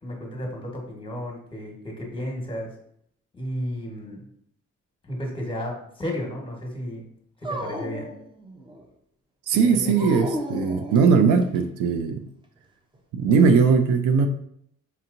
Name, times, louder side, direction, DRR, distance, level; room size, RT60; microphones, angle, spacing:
voice 1, 0.0-2.7 3.3-4.2 5.0-7.0 7.4-8.1 9.6-10.2, equal, 15° left, 1.3 m, -33 dB
Dog, 7.4-8.9 10.0-11.6, equal, 15° right, 0.6 m, -33 dB
voice 2, 9.5-12.2 13.1-14.3, right 5 dB, 85° right, 0.5 m, -19 dB
5.5 x 2.8 x 2.6 m
cardioid pair, 90°, 30 cm